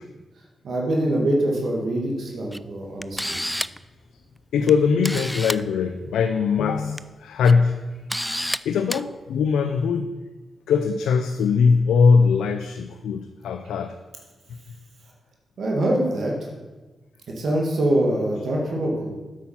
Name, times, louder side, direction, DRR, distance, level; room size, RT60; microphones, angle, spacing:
voice 1, 0.6-3.4 15.6-16.3 17.4-19.1, right 1 dB, 70° right, -1 dB, 1.9 m, -24 dB
Camera, 2.5-2.6 3.0-3.8 4.7-4.8 5.0-5.6 6.8-7.0 7.4-7.5 8.1-8.6 8.9-9.0, equal, 5° left, 0.3 m, -28 dB
voice 2, 4.5-7.8 8.2-8.3 8.7-10.1 10.7-13.9, left 5 dB, 85° left, 8 dB, 0.4 m, -21 dB
8.6 x 6.2 x 5.6 m, 1.2 s
supercardioid pair, 40°, 0 cm